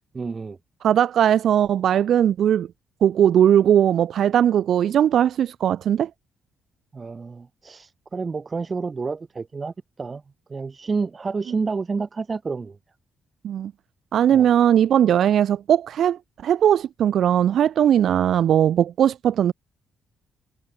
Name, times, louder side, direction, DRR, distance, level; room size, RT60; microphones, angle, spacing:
voice 1, 0.1-0.6 6.9-10.2 10.5-12.8 14.3-14.5, right 4 dB, 35° right, 3.0 m, -29 dB
voice 2, 0.8-2.7 3.0-6.1 13.4-13.7 14.1-19.5, right 10 dB, 70° right, 1.1 m, -19 dB
supercardioid pair, 65°, 0 cm